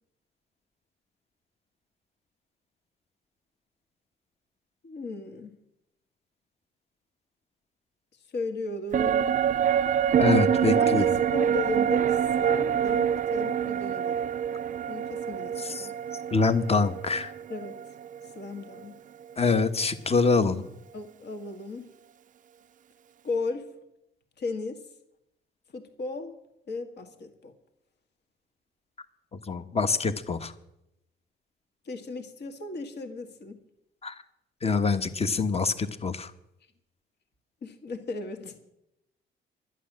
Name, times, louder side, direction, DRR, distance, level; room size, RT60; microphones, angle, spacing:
voice 1, 4.8-5.5 8.3-9.5 10.7-14.2 14.9-15.9 17.5-17.7 18.3-18.9 20.9-21.9 23.2-23.7 24.4-24.8 25.7-26.3 26.7-27.5 31.9-33.6 37.6-38.6, left 3 dB, 60° left, 6 dB, 2.0 m, -35 dB
sound 1, 8.9-18.4 18.8-18.9, right 9 dB, 40° right, 0.4 m, -26 dB
voice 2, 10.2-11.0 15.6-15.9 16.3-17.3 19.4-20.7 29.5-30.5 34.0-34.2 34.6-36.3, left 4 dB, 30° left, 11 dB, 1.2 m, -25 dB
11.5 x 10.5 x 7.5 m, 0.84 s
cardioid pair, 90°, 20 cm